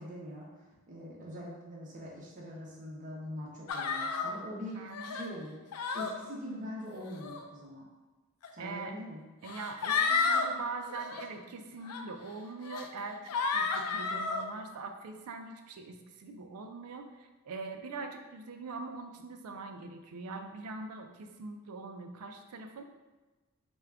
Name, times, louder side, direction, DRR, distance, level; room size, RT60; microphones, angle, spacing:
voice 1, 0.0-4.8 5.1-5.6 5.9-7.9 8.5-9.2, equal, 35° right, -5 dB, 0.6 m, -43 dB
sound 1, 3.7-4.3 4.9-5.3 5.7-6.1 7.0-7.4 8.4-8.5 9.4-10.5 10.9-11.2 11.9-12.0 12.6-12.9 13.3-14.4, left 4 dB, 90° left, 0.4 m, -31 dB
voice 2, 4.7-5.2 8.6-9.0 9.4-22.8, right 3 dB, 75° right, 5 dB, 0.4 m, -42 dB
3.5 x 2.2 x 3.3 m, 1.2 s
head